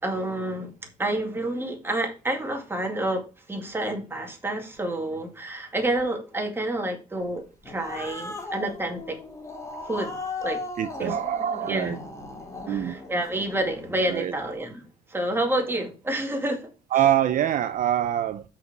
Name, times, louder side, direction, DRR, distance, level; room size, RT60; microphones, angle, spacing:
voice 1, 0.0-0.7 1.0-3.2 3.5-9.2 9.8-10.6 11.0-11.1 11.7-12.0 12.7-14.8 15.1-16.7, right 1 dB, 15° right, 2.2 m, -29 dB
Growling, 7.4-14.2, left 3 dB, 15° left, 2.0 m, -37 dB
voice 2, 10.8-12.0 12.7-13.0 14.1-14.3 16.9-18.4, right 11 dB, 50° right, 0.6 m, -24 dB
6.1 x 5.5 x 5.9 m
cardioid pair, 110°, 17 cm